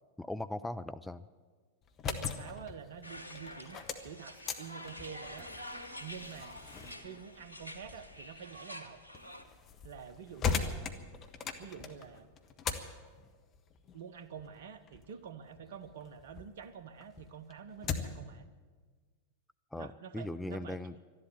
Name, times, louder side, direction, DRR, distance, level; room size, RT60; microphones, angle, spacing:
voice 1, 0.2-1.3 19.7-20.9, left 1 dB, 5° left, 11 dB, 0.4 m, -39 dB
sound 1, 1.8-16.5 16.9-18.3, left 6 dB, 30° left, 1.2 m, -41 dB
voice 2, 2.0-5.5 6.0-6.6 7.0-9.0 9.8-10.9 11.6-12.3 13.9-18.5 19.7-20.9, right 7 dB, 60° right, 13 dB, 0.9 m, -48 dB
sound 2, 3.0-9.4, left 1 dB, 85° right, 1.1 m, -48 dB
13.0 x 11.0 x 9.6 m, 1.5 s
figure-of-eight pair, 90°, 0 cm